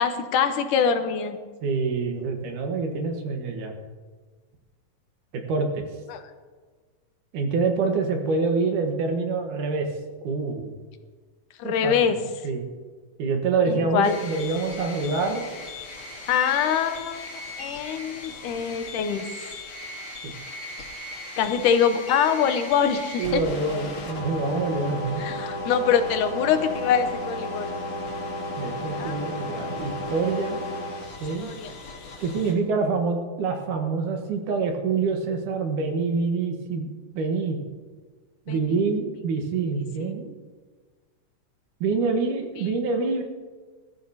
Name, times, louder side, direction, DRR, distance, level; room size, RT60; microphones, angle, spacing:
voice 1, 0.0-1.4 6.1-6.2 11.6-12.2 13.7-14.1 16.3-19.3 21.4-23.4 25.2-27.7 29.0-29.7 31.4-31.7 38.5-38.8 40.0-40.1, left 7 dB, 90° left, 8 dB, 2.4 m, -24 dB
voice 2, 1.6-3.7 5.3-5.8 7.3-9.9 10.2-10.7 11.6-11.9 12.4-12.7 13.2-15.4 20.2-20.3 23.2-25.3 28.6-30.6 31.2-31.5 32.2-36.9 37.1-37.6 38.5-40.3 41.8-43.2, right 4 dB, 80° right, 3 dB, 2.9 m, -26 dB
sound 1, 14.0-32.5, left 1 dB, 55° left, 3.8 m, -35 dB
20.5 x 13.0 x 2.9 m, 1.5 s
omnidirectional pair, 3.6 m